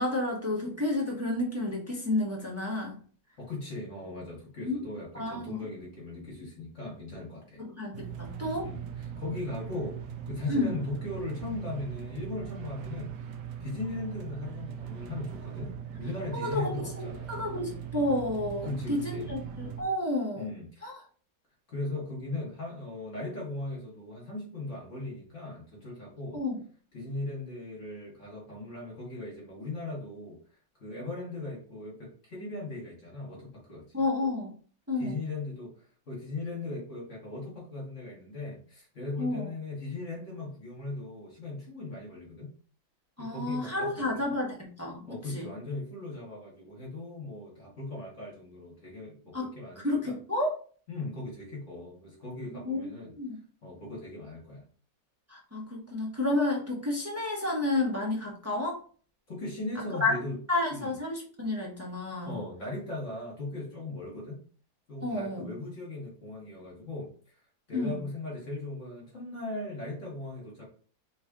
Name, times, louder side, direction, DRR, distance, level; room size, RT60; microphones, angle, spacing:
voice 1, 0.0-3.0 4.6-4.8 5.1-5.6 7.6-8.7 10.5-10.7 16.3-16.7 17.0-20.5 20.8-21.0 26.3-26.6 33.9-34.5 34.9-35.1 39.2-39.5 43.2-45.5 49.3-49.5 49.8-50.6 52.5-53.4 55.3-58.8 59.9-60.2 60.5-62.3 65.0-65.5 67.7-68.0, left 2 dB, 15° right, -1 dB, 0.6 m, -31 dB
voice 2, 3.4-7.6 8.6-10.0 10.3-13.3 13.6-17.3 18.6-19.3 20.4-20.7 21.7-26.4 26.9-33.8 34.9-42.5 43.2-44.2 45.1-50.2 50.9-53.1 53.6-54.6 59.3-60.4 60.7-60.9 62.2-64.4 64.9-67.4 67.7-70.6, left 2 dB, 40° left, -4 dB, 1.8 m, -38 dB
sound 1, 7.9-19.8, right 8 dB, 70° right, 1.1 m, -40 dB
4.0 x 3.3 x 3.6 m, 0.42 s
omnidirectional pair, 2.1 m